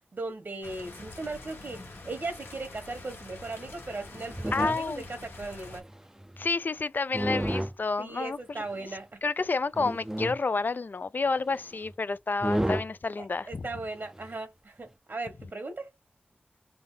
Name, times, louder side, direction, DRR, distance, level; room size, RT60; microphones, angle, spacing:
voice 1, 0.1-5.9 8.0-9.2 13.2-15.9, right 2 dB, 70° right, 1.3 m, -38 dB
sound 1, 0.6-5.8, left 2 dB, 90° left, 1.3 m, -46 dB
sound 2, 4.1-5.1 5.6-6.5 7.1-7.8 8.7-8.8 9.7-10.4 11.5-11.6 11.9-12.0 12.4-12.9 14.1-14.3, right 1 dB, 15° right, 0.4 m, -31 dB
voice 2, 4.5-5.0 6.4-8.6 9.2-13.7, left 4 dB, 55° left, 0.3 m, -30 dB
3.4 x 2.2 x 3.9 m
cardioid pair, 45°, 4 cm